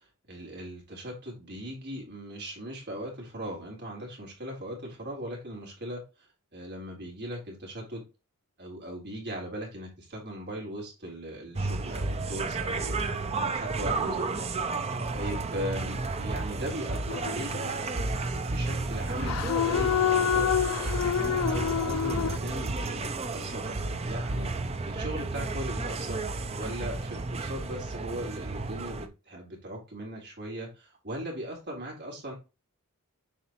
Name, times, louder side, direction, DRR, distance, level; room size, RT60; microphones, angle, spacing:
voice 1, 0.3-6.3 6.5-8.0 8.6-13.0 13.4-14.4 15.1-17.5 18.0-20.6 21.1-24.5 24.8-26.2 26.6-32.3, equal, 50° right, -1 dB, 3.6 m, -39 dB
sound 1, 11.5-29.1, right 3 dB, 30° right, 0.6 m, -32 dB
sound 2, 17.1-17.8 19.2-22.4, left 9 dB, 75° left, 0.3 m, -27 dB
7.3 x 5.1 x 3.0 m, 0.28 s
head